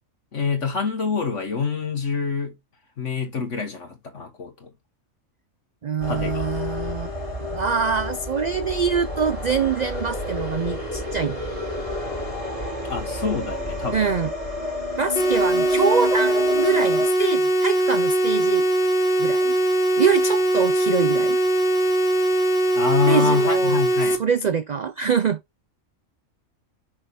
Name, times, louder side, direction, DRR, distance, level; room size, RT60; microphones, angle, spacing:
voice 1, 0.3-2.5 3.0-4.7 6.1-6.3 12.9-14.0 22.7-24.2, left 5 dB, 60° left, 1.6 m, -26 dB
voice 2, 5.8-7.1 7.5-11.5 13.9-14.3 15.0-18.7 19.2-19.6 20.0-21.4 23.1-23.8 24.2-25.4, right 6 dB, 85° right, 0.3 m, -24 dB
sound 1, 6.0-17.1, left 1 dB, 25° right, 3.5 m, -30 dB
sound 2, 15.2-24.2, right 1 dB, 40° left, 1.8 m, -21 dB
6.3 x 5.7 x 3.5 m
omnidirectional pair, 1.4 m